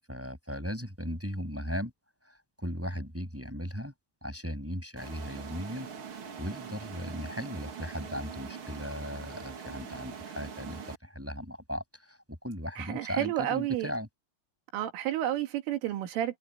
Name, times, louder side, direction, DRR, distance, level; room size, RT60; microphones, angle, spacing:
voice 1, 0.1-1.9 2.2-3.9 4.2-14.1, equal, 5° right, 7.0 m, -37 dB
sound 1, 5.0-11.0, right 7 dB, 55° right, 1.4 m, -43 dB
voice 2, 12.8-13.9 14.7-16.4, right 12 dB, 85° right, 4.6 m, -31 dB
omnidirectional pair, 5.6 m